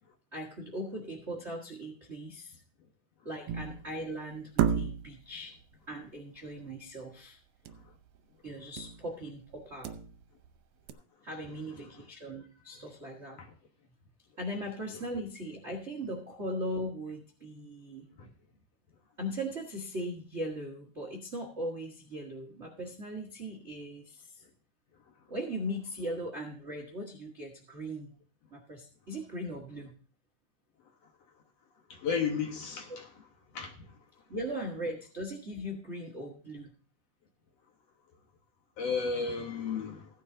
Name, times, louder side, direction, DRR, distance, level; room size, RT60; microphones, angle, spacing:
voice 1, 0.3-2.6 3.2-5.5 5.9-7.4 8.4-9.9 11.2-13.4 14.4-18.1 19.2-24.2 25.3-28.1 28.5-29.9 32.9-33.0 34.3-36.7, equal, 50° right, 0.7 m, -39 dB
sound 1, 3.5-3.9 4.6-5.3 7.7-7.9 8.2-8.3 8.8-9.1 9.5-10.5 10.9-11.0, right 8 dB, 85° right, 2.5 m, -31 dB
voice 2, 31.9-33.1 33.5-33.7 38.8-40.1, left 5 dB, 60° left, 2.1 m, -33 dB
16.0 x 10.5 x 2.7 m
omnidirectional pair, 3.8 m